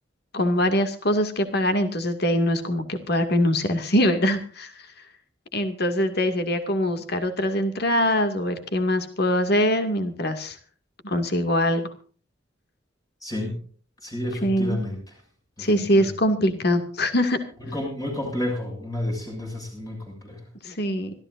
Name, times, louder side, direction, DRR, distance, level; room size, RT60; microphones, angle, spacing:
voice 1, 0.3-4.7 5.5-10.6 11.0-11.9 14.4-14.8 15.6-17.4 20.6-21.1, equal, 55° left, 8 dB, 2.2 m, -23 dB
voice 2, 13.2-13.6 14.0-15.1 15.6-16.1 17.6-20.5, left 1 dB, 20° left, 1 dB, 6.8 m, -31 dB
25.5 x 14.5 x 2.6 m, 0.41 s
head